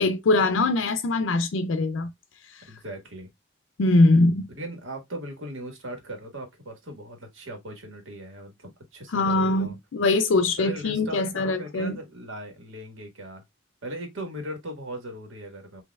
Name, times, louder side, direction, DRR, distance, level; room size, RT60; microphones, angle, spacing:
voice 1, 0.0-2.1 2.5-2.6 3.8-4.5 9.1-12.0, left 2 dB, 85° left, 0.4 m, -22 dB
voice 2, 2.7-3.3 4.5-9.8 10.6-13.4 13.8-15.8, right 1 dB, 90° right, 1.5 m, -38 dB
6.2 x 2.7 x 2.3 m
head